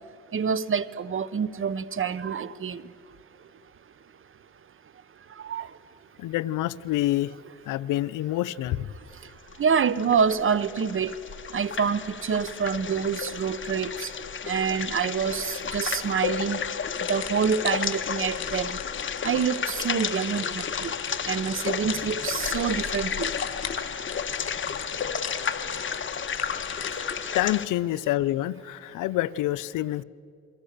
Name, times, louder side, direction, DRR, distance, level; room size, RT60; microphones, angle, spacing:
voice 1, 0.3-2.8 5.4-5.7 9.6-11.1 11.5-14.1 14.4-16.6 17.1-18.8 19.2-20.9 21.3-23.3, right 6 dB, 45° right, 17 dB, 1.1 m, -27 dB
voice 2, 6.2-7.3 7.6-8.9 27.3-30.0, left 15 dB, 90° left, 17 dB, 0.6 m, -27 dB
sound 1, 9.5-27.7, left 7 dB, 40° left, 1.5 m, -32 dB
sound 2, 16.9-27.3, left 9 dB, 60° left, 4.0 m, -40 dB
29.0 x 23.5 x 6.8 m, 2.5 s
cardioid pair, 90°, 30 cm